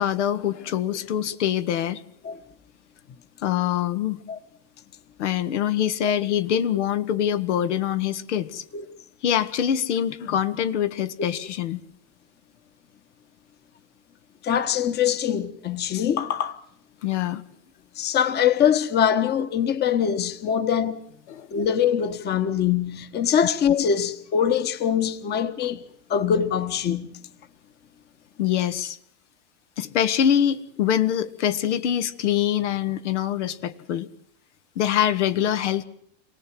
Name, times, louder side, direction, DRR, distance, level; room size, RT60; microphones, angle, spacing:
voice 1, 0.0-2.0 3.4-4.2 5.2-8.6 9.2-11.8 17.0-17.4 21.3-21.5 28.4-29.0 29.8-34.1 34.7-35.8, left 10 dB, 75° left, 1.6 m, -24 dB
voice 2, 14.4-16.6 18.0-21.0 21.5-25.8 26.1-27.2, left 8 dB, 30° left, 1.4 m, -23 dB
26.5 x 18.0 x 7.7 m
supercardioid pair, 135°, 36 cm